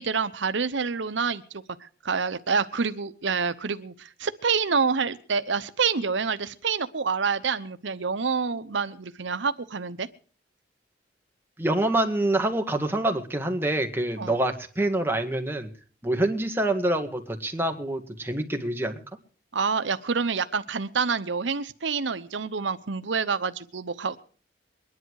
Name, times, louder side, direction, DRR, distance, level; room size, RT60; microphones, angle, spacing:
voice 1, 0.0-10.1 14.2-14.4 19.5-24.2, right 5 dB, 80° right, 12 dB, 0.9 m, -27 dB
voice 2, 11.6-15.7 16.0-19.0, right 1 dB, 10° right, 4 dB, 1.9 m, -26 dB
22.5 x 10.5 x 4.7 m, 0.42 s
head